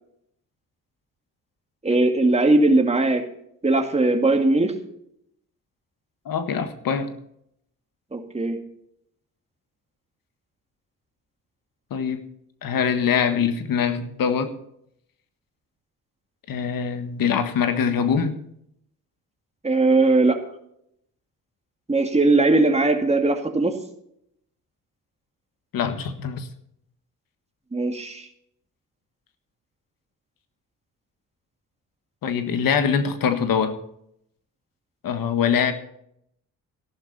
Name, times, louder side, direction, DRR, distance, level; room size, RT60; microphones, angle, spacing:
voice 1, 1.8-3.2 3.6-4.7 8.1-8.6 19.6-20.4 21.9-23.7 27.7-28.3, right 2 dB, 20° right, 4 dB, 2.2 m, -19 dB
voice 2, 6.2-7.1 11.9-12.2 12.6-14.5 16.5-18.3 25.7-26.5 32.2-33.8 35.0-35.7, left 7 dB, 80° left, 9 dB, 1.6 m, -23 dB
13.5 x 12.0 x 4.2 m, 0.73 s
cardioid pair, 85°, 34 cm